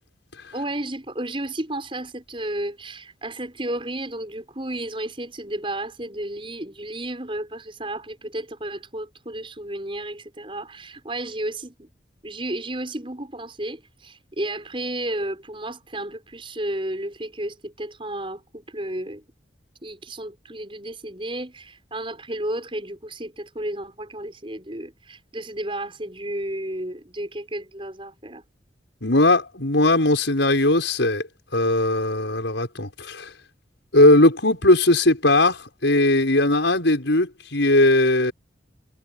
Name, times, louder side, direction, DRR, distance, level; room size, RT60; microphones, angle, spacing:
voice 1, 0.5-11.9 12.2-19.2 19.8-28.4, right 1 dB, 30° right, 6.5 m, -32 dB
voice 2, 29.0-31.2 31.5-33.3 33.9-38.3, left 2 dB, 80° left, 6.1 m, -19 dB
head